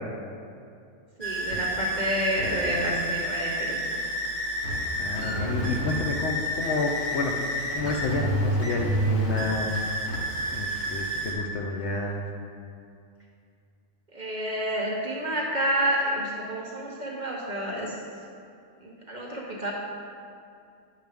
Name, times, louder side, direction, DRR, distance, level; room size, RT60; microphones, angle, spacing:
sound 1, 1.2-11.3, right 1 dB, 40° left, 1.6 m, -29 dB
voice 1, 1.2-3.8 14.1-18.0 18.8-19.7, equal, 35° right, -3 dB, 0.9 m, -29 dB
voice 2, 5.0-7.3 7.7-9.8 10.5-12.2, left 2 dB, 60° left, 0 dB, 0.8 m, -30 dB
9.2 x 6.6 x 3.5 m, 2.4 s
omnidirectional pair, 1.6 m